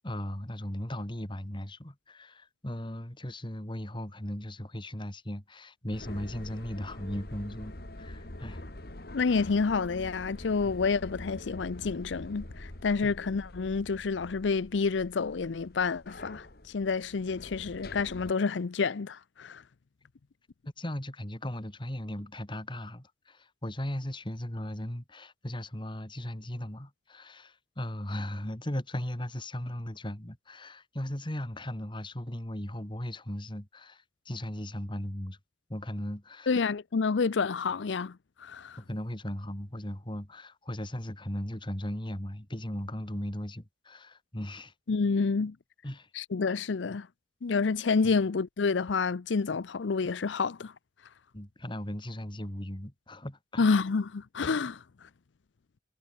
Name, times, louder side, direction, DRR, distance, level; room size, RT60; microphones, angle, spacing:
voice 1, 0.0-8.6 13.0-13.1 20.8-35.4 35.7-36.5 38.8-44.7 45.8-46.1 48.0-48.1 51.3-53.7, left 1 dB, 25° left, 2.5 m, -37 dB
sound 1, 5.9-18.3, left 1 dB, 55° left, 2.2 m, -45 dB
voice 2, 9.1-19.6 36.5-38.8 44.9-45.6 46.1-47.1 47.4-50.7 53.6-54.8, left 4 dB, 85° left, 0.6 m, -29 dB
head